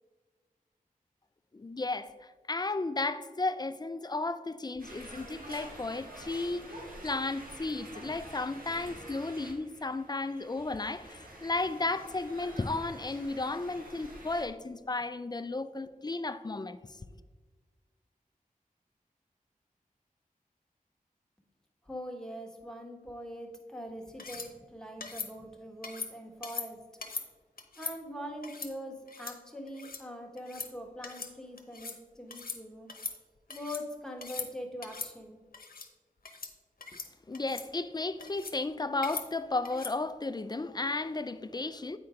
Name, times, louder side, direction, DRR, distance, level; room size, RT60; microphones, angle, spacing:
voice 1, 1.5-2.1 2.5-6.7 7.0-16.8 37.3-42.0, left 3 dB, 30° left, 0.4 m, -34 dB
sound 1, 4.8-14.5, right 1 dB, 80° right, 1.6 m, -48 dB
voice 2, 21.8-26.8 27.8-32.9 33.5-35.4, equal, 5° left, 1.3 m, -43 dB
sound 2, 24.2-24.5 25.0-25.3 25.8-26.1 26.4-26.7 27.0-27.3 27.6-27.9 28.4-28.7 29.1-29.4 29.7-30.0 30.4-30.7 31.0-31.3 31.6-32.0 32.3-32.6 32.9-33.8 34.2-34.5 34.8-35.1 35.5-35.9 36.2-36.5 36.8-37.1 37.3-37.7 38.2-38.6 39.0-39.3 39.6-39.9, left 4 dB, 80° left, 0.8 m, -40 dB
8.7 x 4.3 x 5.0 m
wide cardioid pair, 60°, 15 cm